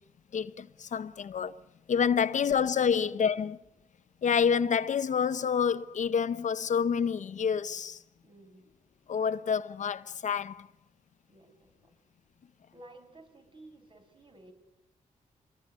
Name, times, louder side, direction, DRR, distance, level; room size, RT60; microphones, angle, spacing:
voice 1, 0.3-1.6 1.9-3.6 4.2-8.0 9.1-10.7, left 7 dB, 60° left, 0.9 m, -28 dB
voice 2, 2.8-3.3 8.2-8.7 11.3-12.0 12.7-14.5, right 2 dB, 35° right, 6.9 m, -54 dB
24.5 x 20.5 x 9.5 m
cardioid pair, 65°, 14 cm